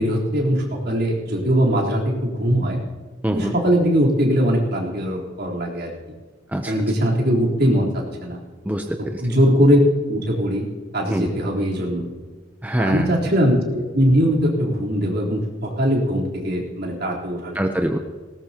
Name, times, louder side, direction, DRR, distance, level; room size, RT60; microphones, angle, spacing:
voice 1, 0.0-2.8 3.3-5.9 6.7-8.4 9.2-9.8 10.1-10.7 10.9-12.0 12.8-17.6, equal, 55° right, -3 dB, 3.8 m, -20 dB
voice 2, 3.2-3.5 6.5-6.7 8.6-9.2 11.1-11.3 12.6-13.2 17.5-18.0, right 1 dB, 10° right, 3 dB, 0.7 m, -24 dB
19.5 x 19.0 x 3.0 m, 1.4 s
head